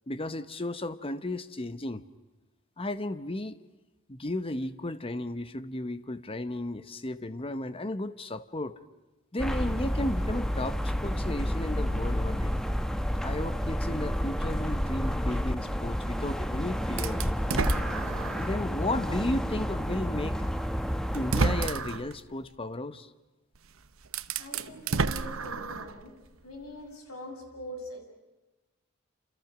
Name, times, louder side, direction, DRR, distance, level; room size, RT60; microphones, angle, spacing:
voice 1, 0.1-2.0 2.8-3.6 4.1-8.8 9.3-12.5 13.2-17.2 18.3-20.4 21.1-23.1, left 1 dB, 25° left, 12 dB, 1.0 m, -34 dB
sound 1, 9.4-21.7, equal, 5° left, 1.0 m, -30 dB
sound 2, 17.0-18.6 19.2-19.3 20.5-20.6 21.1-22.1 23.6-23.7 24.0-26.0, right 4 dB, 70° right, 1.0 m, -30 dB
voice 2, 24.4-26.2 26.4-28.0, equal, 85° left, 2 dB, 6.8 m, -43 dB
28.5 x 28.0 x 6.2 m, 1.1 s
head